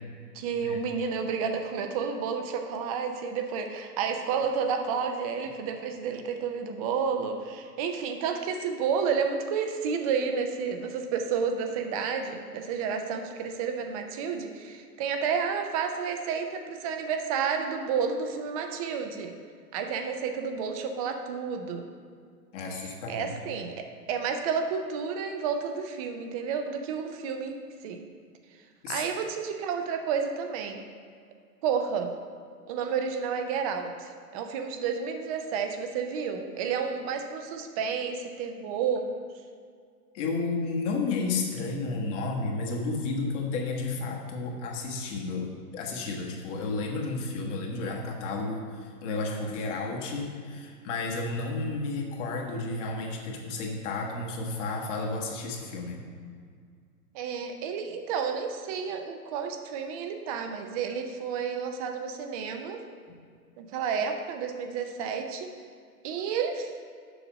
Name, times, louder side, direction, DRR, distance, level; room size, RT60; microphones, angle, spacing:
voice 1, 0.3-19.3 19.7-21.8 22.7-23.8 24.1-27.5 27.8-28.0 28.9-30.8 31.6-32.1 32.7-39.1 57.1-62.8 63.6-65.5 66.0-66.7, right 6 dB, 25° right, 5 dB, 0.5 m, -31 dB
voice 2, 22.5-23.3 28.8-29.0 40.1-56.0, left 3 dB, 45° left, -1 dB, 1.5 m, -32 dB
7.0 x 5.9 x 5.1 m, 2.1 s
hypercardioid pair, 130°, 48 cm